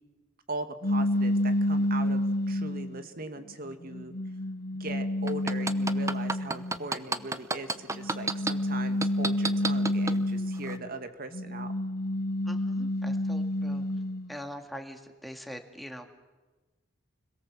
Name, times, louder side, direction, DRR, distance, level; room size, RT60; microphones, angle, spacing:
voice 1, 0.5-4.1 4.8-11.7, right 2 dB, 50° right, 7 dB, 2.1 m, -40 dB
sound 1, 0.8-3.0 3.7-6.8 7.9-10.9 11.3-14.3, left 1 dB, 55° left, 1.1 m, -29 dB
sound 2, 5.3-8.5 9.0-10.2 10.6-10.7, right 3 dB, 15° right, 0.9 m, -29 dB
voice 2, 12.5-13.9 14.3-16.1, equal, ahead, 4 dB, 2.2 m, -43 dB
29.5 x 22.0 x 7.6 m, 1.2 s
head